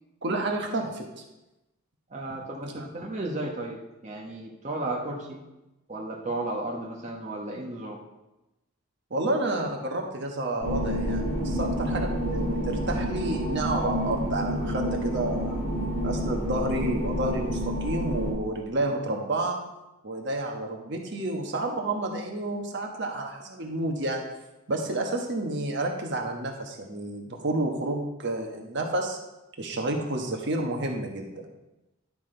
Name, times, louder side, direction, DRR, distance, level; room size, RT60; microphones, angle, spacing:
voice 1, 0.2-1.2 2.8-2.9 9.1-15.6 16.0-19.6 20.0-24.2 24.7-29.2 29.6-31.5, right 2 dB, 55° right, 2 dB, 1.3 m, -30 dB
voice 2, 2.1-5.4 5.9-8.0, right 2 dB, 35° right, -1 dB, 1.2 m, -34 dB
sound 1, 10.6-18.3, equal, 40° left, 2.7 m, -29 dB
11.5 x 6.0 x 4.5 m, 0.97 s
head